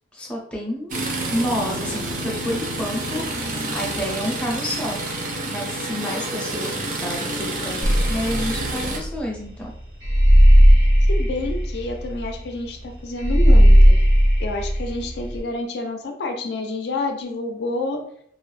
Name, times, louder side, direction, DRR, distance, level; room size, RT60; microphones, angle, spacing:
voice 1, 0.1-1.0 1.3-3.2 3.7-5.0 5.5-9.7, equal, 5° left, -3 dB, 0.5 m, -29 dB
sound 1, 0.9-9.0, right 2 dB, 45° right, 0.5 m, -28 dB
sound 2, 7.8-15.4, equal, 70° right, 1.1 m, -15 dB
voice 2, 11.1-14.0 14.4-18.0, left 2 dB, 60° left, 3 dB, 0.4 m, -28 dB
2.4 x 2.0 x 3.1 m, 0.65 s
head